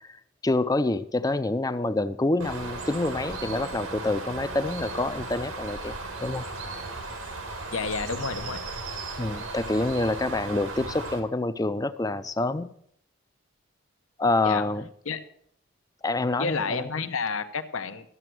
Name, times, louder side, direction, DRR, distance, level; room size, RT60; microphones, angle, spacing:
voice 1, 0.0-6.5 9.2-12.7 14.2-14.9 16.0-16.9, left 2 dB, 15° left, 13 dB, 0.4 m, -27 dB
Bird, 2.4-11.2, right 3 dB, 90° right, 2.2 m, -36 dB
voice 2, 7.7-8.6 14.4-14.6 15.1-15.2 16.4-18.1, left 4 dB, 75° left, 10 dB, 0.8 m, -30 dB
12.5 x 7.9 x 6.2 m, 0.68 s
head